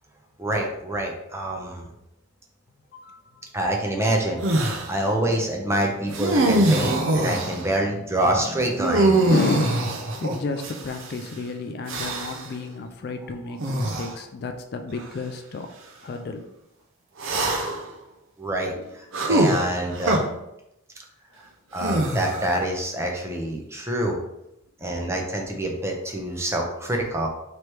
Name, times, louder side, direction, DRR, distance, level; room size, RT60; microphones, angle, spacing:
voice 1, 0.4-1.9 3.5-9.2 18.4-20.2 21.7-24.2 24.8-27.3, right 1 dB, 10° right, 0 dB, 0.5 m, -26 dB
voice 2, 2.9-3.4 9.2-15.7 16.0-16.4 18.7-18.8 24.8-25.2, left 3 dB, 45° left, 6 dB, 0.3 m, -31 dB
sound 1, 4.4-4.9 6.1-7.7 8.8-11.1 11.9-12.5 13.6-14.1 15.0-15.1 17.2-17.9 19.1-20.2 21.8-22.6, right 1 dB, 65° right, 0.6 m, -23 dB
3.2 x 3.0 x 4.5 m, 0.86 s
head